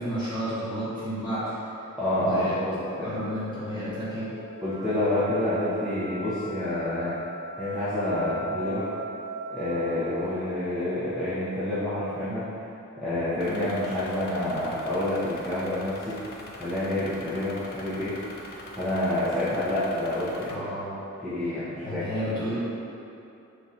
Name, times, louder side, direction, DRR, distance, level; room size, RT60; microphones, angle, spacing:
voice 1, 0.0-1.6 2.2-2.5 3.0-4.3 20.5-21.0 21.8-22.6, equal, 20° left, -12 dB, 1.4 m, -31 dB
voice 2, 2.0-3.2 4.6-7.2 7.6-8.8 9.5-12.4 13.0-16.2 16.5-18.1 18.8-20.7 21.2-22.1, left 1 dB, ahead, -15 dB, 0.6 m, -28 dB
sound 1, 3.2-11.9, right 1 dB, 85° right, 0.7 m, -39 dB
sound 2, 13.4-20.6, left 1 dB, 45° left, 0.4 m, -43 dB
3.6 x 2.8 x 4.1 m, 2.8 s
head